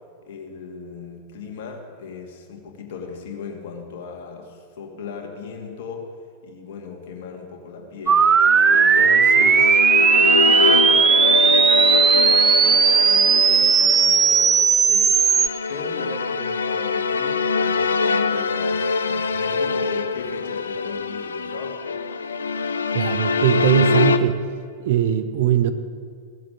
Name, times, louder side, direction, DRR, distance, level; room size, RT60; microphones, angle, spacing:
voice 1, 0.2-6.1 6.4-8.3 8.7-15.2 15.7-21.8, left 5 dB, 55° left, 2 dB, 2.4 m, -37 dB
sound 1, 8.1-24.2, left 5 dB, 70° left, 0.6 m, -24 dB
sound 2, 8.1-15.5, right 6 dB, 20° right, 0.5 m, -16 dB
voice 2, 22.9-24.4 24.8-25.7, right 10 dB, 55° right, 10 dB, 0.9 m, -20 dB
16.5 x 7.5 x 8.7 m, 2.1 s
figure-of-eight pair, 90°, 0 cm